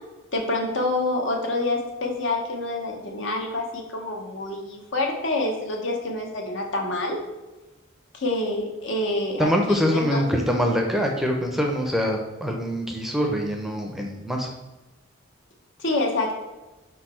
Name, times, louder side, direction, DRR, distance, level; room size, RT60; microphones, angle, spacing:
voice 1, 0.3-7.2 8.1-10.3 15.8-16.4, left 2 dB, 70° left, 1 dB, 1.1 m, -27 dB
voice 2, 9.4-14.5, equal, ahead, 1 dB, 0.6 m, -24 dB
4.8 x 4.5 x 4.3 m, 1.1 s
head